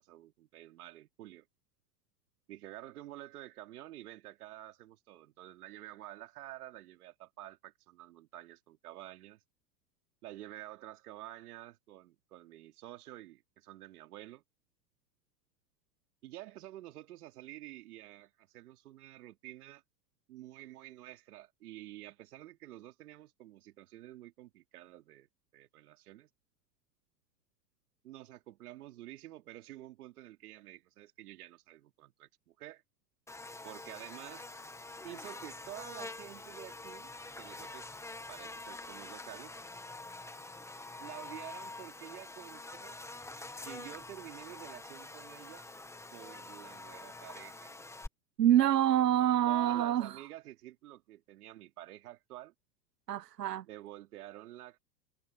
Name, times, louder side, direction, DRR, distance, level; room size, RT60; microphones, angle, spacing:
voice 1, 0.0-1.5 2.5-9.4 10.2-14.4 16.2-19.8 20.3-25.3 25.5-26.3 28.0-32.8 33.6-34.5 35.0-37.1 37.4-37.9 38.3-39.5 41.0-43.0 43.6-45.6 46.1-47.7 48.4-48.7 49.5-52.5 53.6-54.8, right 15 dB, 70° right, 2.9 m, -49 dB
Buzz, 33.3-48.1, left 2 dB, 5° left, 1.6 m, -46 dB
voice 2, 48.4-50.2 53.1-53.6, right 11 dB, 85° right, 1.1 m, -26 dB
hypercardioid pair, 100°, 47 cm